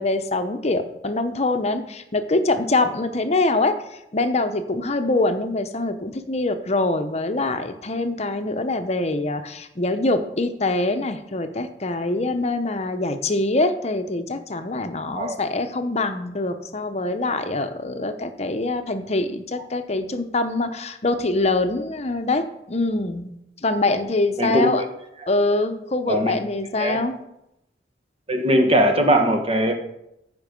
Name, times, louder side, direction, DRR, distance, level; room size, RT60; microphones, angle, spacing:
voice 1, 0.0-3.8 4.1-23.3 23.6-24.8 25.3-27.2, left 2 dB, 40° left, 9 dB, 0.8 m, -24 dB
voice 2, 24.4-24.8 26.1-26.4 26.8-27.0 28.3-29.7, equal, 35° right, 5 dB, 1.4 m, -20 dB
14.0 x 5.3 x 5.3 m, 0.83 s
head